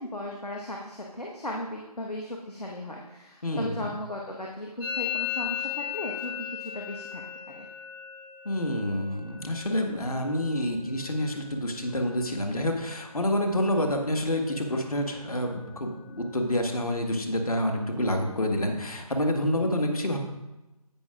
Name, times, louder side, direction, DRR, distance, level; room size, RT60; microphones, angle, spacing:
voice 1, 0.0-7.7, left 1 dB, 90° left, -1 dB, 1.3 m, -37 dB
voice 2, 3.4-3.9 8.4-20.2, left 1 dB, 70° left, 3 dB, 1.7 m, -28 dB
Musical instrument, 4.8-12.5 12.7-13.3 13.5-14.1 14.4-16.4, left 12 dB, 10° right, 0.5 m, -38 dB
16.5 x 5.7 x 2.5 m, 1.0 s
figure-of-eight pair, 160°, 19 cm